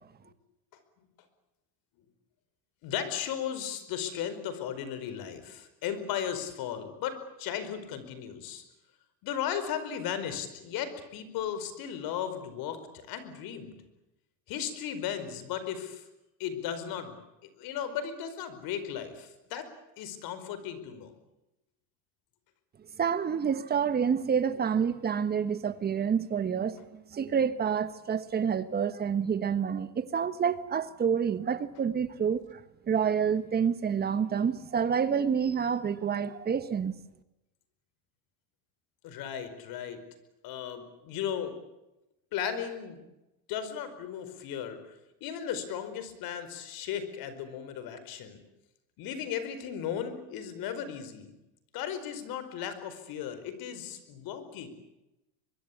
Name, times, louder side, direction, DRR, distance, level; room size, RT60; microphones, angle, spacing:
voice 1, 2.8-8.6 9.2-13.8 14.5-16.0 16.4-17.2 17.6-19.7 20.0-21.1 39.0-40.0 40.4-41.6 42.3-43.0 43.5-48.4 49.0-51.3 51.7-54.7, left 9 dB, 55° left, 4.8 m, -36 dB
voice 2, 23.0-32.6 32.9-36.9, right 7 dB, 20° right, 1.3 m, -28 dB
24.5 x 22.0 x 8.5 m
cardioid pair, 145°, 44 cm